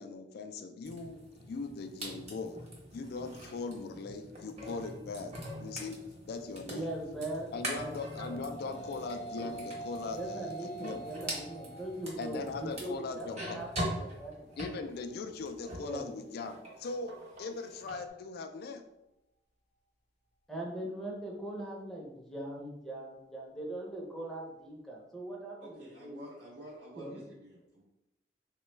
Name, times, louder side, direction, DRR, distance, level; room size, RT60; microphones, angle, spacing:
voice 1, 0.0-6.0 6.3-6.9 7.5-11.0 12.2-13.6 14.6-18.8, left 4 dB, 60° left, 7 dB, 0.3 m, -40 dB
sound 1, 0.8-16.0 16.3-18.0, right 1 dB, 40° right, 0.9 m, -43 dB
voice 2, 6.7-9.2 10.1-14.5 15.8-16.1 20.5-26.2 27.0-27.2, right 1 dB, ahead, -2 dB, 0.6 m, -41 dB
sound 2, 8.1-17.2, right 2 dB, 40° left, 0.7 m, -47 dB
voice 3, 25.6-27.8, right 1 dB, 65° right, -5 dB, 0.5 m, -50 dB
3.2 x 2.2 x 3.1 m, 0.89 s
head